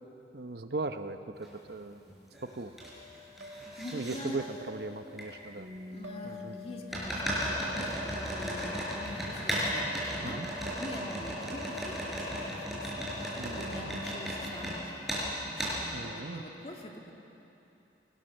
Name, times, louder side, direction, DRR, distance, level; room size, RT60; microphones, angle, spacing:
voice 1, 0.3-2.0 2.6-2.7 3.9-5.7 6.2-6.6 10.2-10.5 13.3-13.9 15.9-16.4, right 2 dB, 65° right, 8 dB, 0.9 m, -38 dB
sound 1, 1.4-1.5 2.1-2.9 3.1-4.2 5.2-5.3 6.9-14.8 15.1-15.2 15.6-15.8, equal, ahead, 5.5 m, -35 dB
sound 2, 2.8-13.3, equal, 80° right, 2.5 m, -49 dB
voice 2, 3.1-3.5 3.8-4.4 5.9-17.1, equal, 35° left, 1 dB, 2.2 m, -45 dB
Bass guitar, 5.6-11.8, left 2 dB, 45° right, 5.2 m, -50 dB
26.5 x 18.5 x 6.5 m, 2.9 s
head